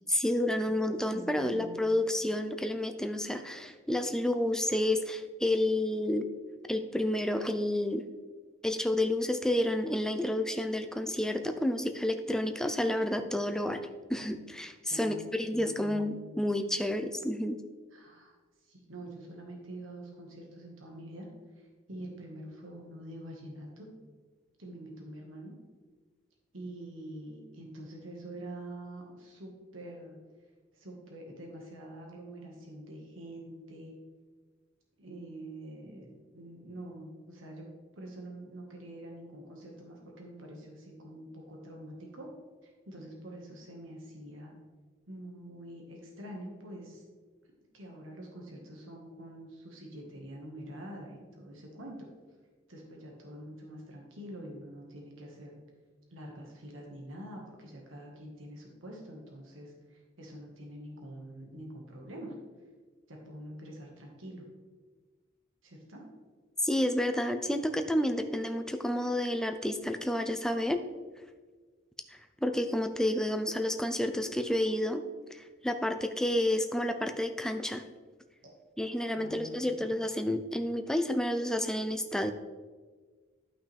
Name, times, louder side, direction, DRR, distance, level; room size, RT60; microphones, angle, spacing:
voice 1, 0.1-6.3 6.7-8.1 8.6-13.8 14.1-17.6 66.6-70.8 72.4-77.8 78.8-82.3, left 1 dB, 5° left, 7 dB, 0.5 m, -30 dB
voice 2, 1.1-1.7 14.9-16.4 17.9-21.3 21.5-23.9 24.6-25.6 26.5-30.2 30.7-33.9 35.0-37.7 37.9-42.3 42.6-44.5 45.1-47.0 47.7-52.0 52.7-55.6 56.1-62.3 63.1-64.4 65.6-66.0 78.4-78.5 79.1-79.9, right 1 dB, 85° right, 0 dB, 1.6 m, -46 dB
12.5 x 5.7 x 3.4 m, 1.4 s
head